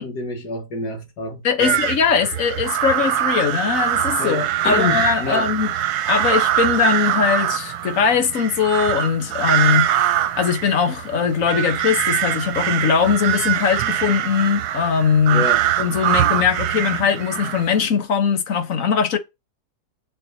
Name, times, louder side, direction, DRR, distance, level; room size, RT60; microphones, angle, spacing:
voice 1, 0.0-1.8 4.2-5.5 15.3-15.7, left 3 dB, 85° left, 2.3 m, -27 dB
voice 2, 1.4-5.7 6.1-9.9 10.3-15.5 15.8-19.2, left 6 dB, 60° left, 1.5 m, -20 dB
sound 1, 1.6-17.9, right 12 dB, 85° right, 1.2 m, -23 dB
6.9 x 6.9 x 2.8 m
omnidirectional pair, 1.7 m